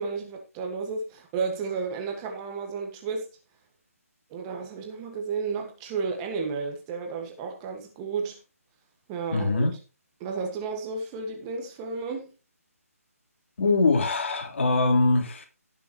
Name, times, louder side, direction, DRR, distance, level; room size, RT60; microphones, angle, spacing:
voice 1, 0.0-3.3 4.3-8.4 9.1-9.8 10.2-12.3, right 5 dB, 15° right, 1.6 m, -32 dB
voice 2, 9.3-9.7 13.6-15.5, left 3 dB, 50° left, 3.4 m, -23 dB
17.5 x 6.8 x 3.0 m
figure-of-eight pair, 160°, 8 cm